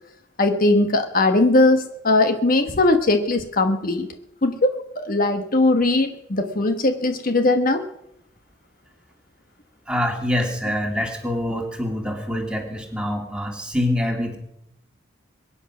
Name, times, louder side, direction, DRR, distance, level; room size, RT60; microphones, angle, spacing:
voice 1, 0.4-4.1 4.4-7.8, left 2 dB, 50° left, 7 dB, 1.2 m, -19 dB
voice 2, 9.9-14.4, left 1 dB, 5° right, 2 dB, 2.7 m, -25 dB
23.0 x 10.0 x 6.1 m, 0.81 s
head